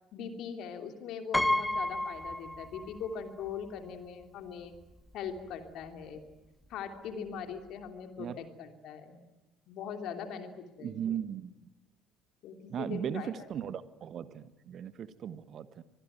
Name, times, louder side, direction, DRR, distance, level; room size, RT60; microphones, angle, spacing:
voice 1, 0.1-4.7 5.1-6.2 6.7-9.2 9.7-10.9 12.4-13.3, left 6 dB, 55° left, 6 dB, 3.1 m, -41 dB
Piano, 1.3-3.2 3.5-3.6 4.7-4.8 5.1-5.4, left 1 dB, 5° left, 1.1 m, -31 dB
voice 2, 10.8-11.5 12.7-15.8, right 9 dB, 45° right, 14 dB, 1.3 m, -37 dB
25.5 x 20.5 x 9.3 m, 1.0 s
figure-of-eight pair, 55°, 0 cm